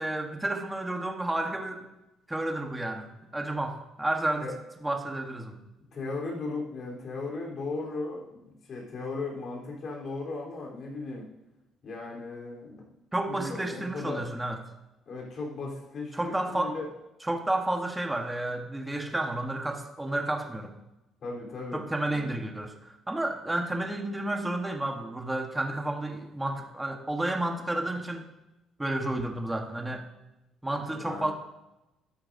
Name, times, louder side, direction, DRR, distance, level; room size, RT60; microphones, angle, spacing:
voice 1, 0.0-1.9 2.3-3.1 3.3-4.5 4.8-5.6 13.1-14.6 16.1-16.8 17.2-20.7 21.7-28.3 28.8-30.0 30.6-31.3, right 1 dB, 10° right, 3 dB, 1.1 m, -31 dB
voice 2, 5.9-11.3 11.8-12.9 13.3-14.2 15.1-16.9 21.2-22.4 31.0-31.3, left 3 dB, 45° left, -2 dB, 3.5 m, -37 dB
13.0 x 11.5 x 2.6 m, 0.96 s
cardioid pair, 150°, 0 cm